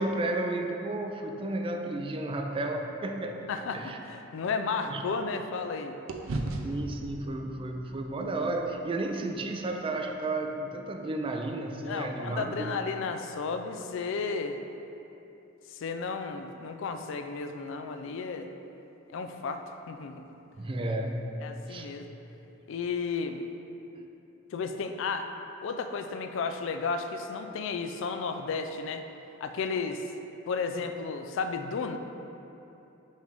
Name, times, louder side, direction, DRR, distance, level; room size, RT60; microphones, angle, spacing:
voice 1, 0.0-3.4 3.7-4.0 4.8-5.0 6.6-12.7 20.6-21.3 21.7-21.9, right 2 dB, 25° right, 3 dB, 0.4 m, -32 dB
sound 1, 3.4-5.7 6.1-10.3, right 2 dB, 85° right, 0.5 m, -40 dB
voice 2, 3.5-5.9 11.9-14.6 15.7-18.5 19.1-20.2 21.4-22.1 22.7-23.4 24.5-25.3 25.6-29.0 29.4-30.0 30.5-32.0, left 4 dB, 65° left, 7 dB, 0.4 m, -33 dB
6.4 x 3.4 x 5.1 m, 2.9 s
head